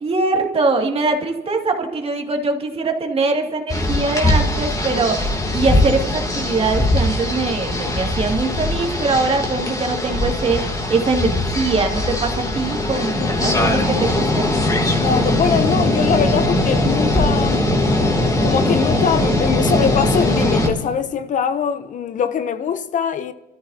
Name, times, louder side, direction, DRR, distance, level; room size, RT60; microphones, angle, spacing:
voice 1, 0.0-10.6 10.9-14.5, right 3 dB, 35° right, 2.3 m, -22 dB
sound 1, 3.7-20.7, left 1 dB, 20° left, 2.6 m, -20 dB
voice 2, 13.2-13.7 15.0-17.6 18.4-23.3, left 7 dB, 50° left, 0.7 m, -22 dB
30.0 x 13.5 x 2.8 m
cardioid pair, 110°, 17 cm